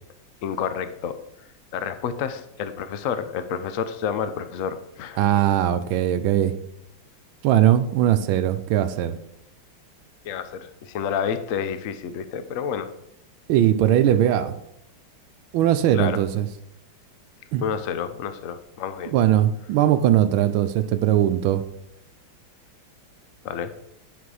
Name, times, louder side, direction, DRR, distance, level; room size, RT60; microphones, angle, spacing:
voice 1, 0.4-1.1 1.7-5.4 10.2-12.9 15.9-16.2 17.6-19.1 23.4-23.7, left 7 dB, 85° left, 10 dB, 0.7 m, -29 dB
voice 2, 5.2-6.5 7.4-9.2 13.5-14.6 15.5-16.5 17.5-17.6 19.1-21.6, right 11 dB, 80° right, 11 dB, 1.4 m, -20 dB
10.0 x 4.2 x 4.8 m, 0.77 s
omnidirectional pair, 2.2 m